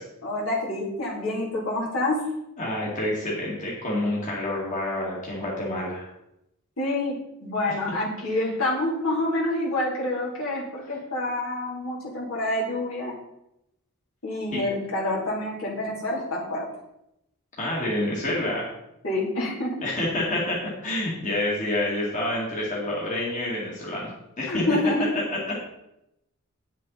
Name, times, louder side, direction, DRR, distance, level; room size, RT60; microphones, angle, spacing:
voice 1, 0.2-2.2 6.8-7.1 7.4-13.1 14.2-16.6 19.0-19.8 24.5-25.0, left 1 dB, 70° left, -5 dB, 3.3 m, -27 dB
voice 2, 2.6-6.1 14.5-14.6 17.6-18.7 19.8-24.1 24.4-24.7, left 1 dB, 35° left, -5 dB, 2.4 m, -28 dB
9.8 x 7.4 x 4.1 m, 0.84 s
head